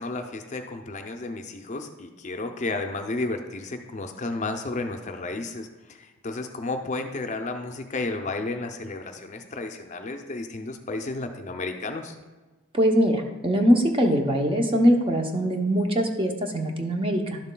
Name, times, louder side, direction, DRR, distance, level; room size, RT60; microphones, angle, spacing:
voice 1, 0.0-12.1, left 2 dB, 35° left, 5 dB, 0.5 m, -32 dB
voice 2, 12.7-17.4, equal, 25° right, 3 dB, 0.7 m, -22 dB
11.5 x 7.0 x 2.2 m, 1.2 s
head